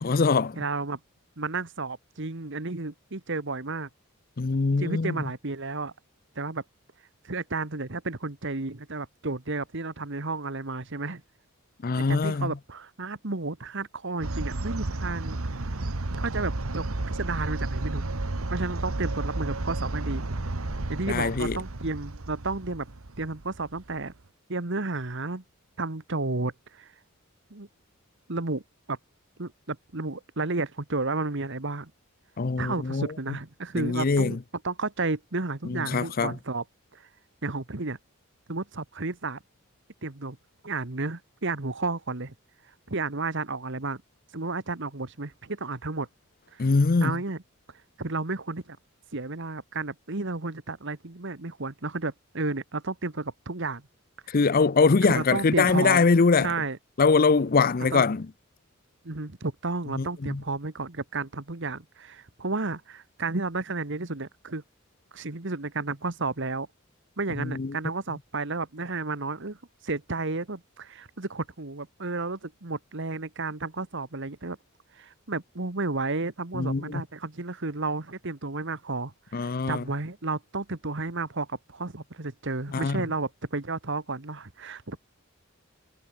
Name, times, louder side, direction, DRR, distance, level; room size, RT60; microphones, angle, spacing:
voice 1, 0.0-0.6 4.4-5.2 11.8-12.5 21.1-21.6 32.4-33.1 33.8-34.4 35.7-36.3 46.6-47.1 54.3-56.5 57.0-58.3 60.0-60.4 67.4-67.7 76.5-77.0 79.3-79.8 82.7-83.0, left 4 dB, 45° left, 0.6 m, -23 dB
voice 2, 0.5-1.0 1.4-3.9 4.8-5.9 6.3-6.6 7.2-11.2 12.0-15.4 16.2-18.1 18.5-20.3 20.9-22.9 23.2-24.1 24.5-25.4 25.8-26.9 27.5-27.7 28.3-28.6 28.9-29.0 29.4-31.9 32.6-34.4 34.6-36.6 36.9-37.0 37.4-38.0 38.5-39.4 40.0-40.4 40.6-42.3 42.9-44.0 44.3-46.1 46.5-46.6 47.0-47.4 48.0-48.8 49.1-53.8 55.1-56.1 56.4-56.8 57.9-58.1 59.0-64.6 65.1-66.7 67.2-69.6 69.8-74.6 74.9-85.0, right 3 dB, 60° right, 1.6 m, -32 dB
sound 1, 14.2-24.0, right 2 dB, 90° right, 1.4 m, -32 dB
head